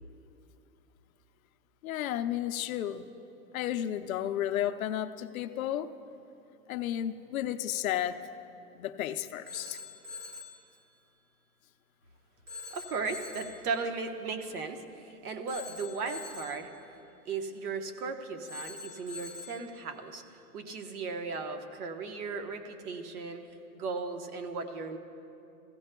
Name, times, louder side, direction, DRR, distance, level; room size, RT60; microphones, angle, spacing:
voice 1, 1.8-3.1 3.5-5.9 6.7-8.3 8.8-9.8, left 11 dB, 65° left, 9 dB, 0.6 m, -33 dB
Telephone, 9.5-10.6 12.5-13.6 15.5-16.6 18.5-19.6, left 4 dB, 15° right, 0.5 m, -44 dB
voice 2, 12.7-14.8 15.2-16.7 17.2-20.2 20.5-23.4 23.7-25.0, right 4 dB, 70° right, 6 dB, 1.2 m, -36 dB
17.0 x 15.0 x 2.2 m, 2.7 s
supercardioid pair, 170°, 46 cm